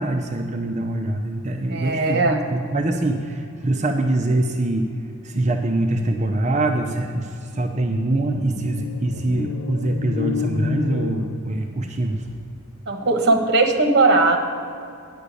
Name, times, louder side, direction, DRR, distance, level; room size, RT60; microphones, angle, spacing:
voice 1, 0.0-4.9 5.2-12.3, right 2 dB, 35° right, 3 dB, 0.6 m, -24 dB
voice 2, 1.7-2.4 12.9-14.4, right 3 dB, 50° right, 3 dB, 1.2 m, -18 dB
sound 1, 7.3-12.1, left 5 dB, 75° left, 0.5 m, -31 dB
10.0 x 6.7 x 8.3 m, 2.5 s
head